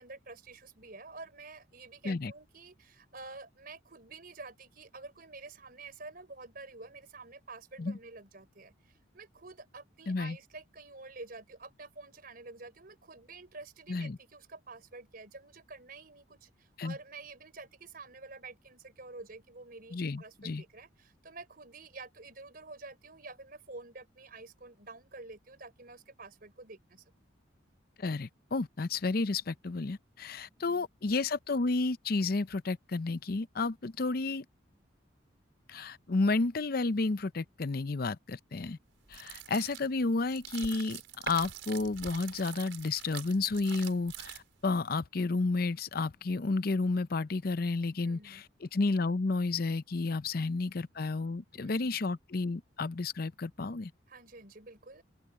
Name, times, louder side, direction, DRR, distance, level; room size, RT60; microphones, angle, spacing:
voice 1, 0.0-27.0 30.5-30.9 48.0-48.4 50.3-50.6 51.5-51.9 54.1-55.0, right 3 dB, 50° right, 4.3 m, -49 dB
voice 2, 10.1-10.4 13.9-14.2 16.8-17.0 19.9-20.6 28.0-34.4 35.7-38.8 39.1-53.9, left 3 dB, 50° left, 0.6 m, -31 dB
sound 1, 39.0-44.7, right 8 dB, 75° right, 4.9 m, -44 dB
open air
head